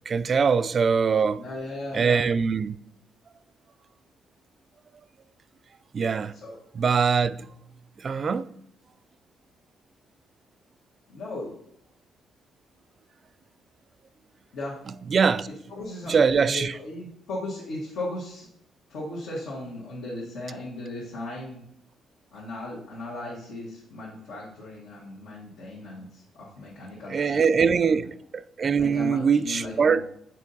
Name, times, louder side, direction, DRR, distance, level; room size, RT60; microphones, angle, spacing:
voice 1, 0.1-1.4 1.9-2.8 5.9-6.3 6.7-7.6 8.0-8.5 15.1-15.5 16.1-16.7 27.1-30.0, right 6 dB, 45° right, 0.3 m, -23 dB
voice 2, 1.4-2.2 6.4-6.6 11.1-11.5 14.5-14.7 15.7-18.5 18.9-21.6 22.3-28.0 28.8-30.0, left 2 dB, 85° left, 1.6 m, -37 dB
7.3 x 4.5 x 4.0 m
cardioid pair, 90°, 0 cm